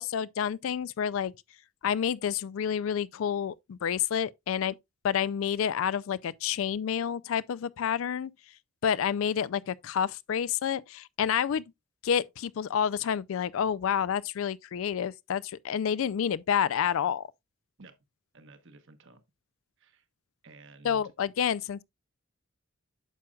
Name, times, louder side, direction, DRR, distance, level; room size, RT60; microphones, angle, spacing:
voice 1, 0.0-1.3 1.8-4.8 5.0-8.3 8.8-11.7 12.0-17.3 20.8-21.8, left 8 dB, 65° left, 0.3 m, -29 dB
voice 2, 18.3-19.2 19.8-20.1 20.4-21.1, right 3 dB, 60° right, 1.1 m, -53 dB
9.1 x 6.3 x 2.3 m
head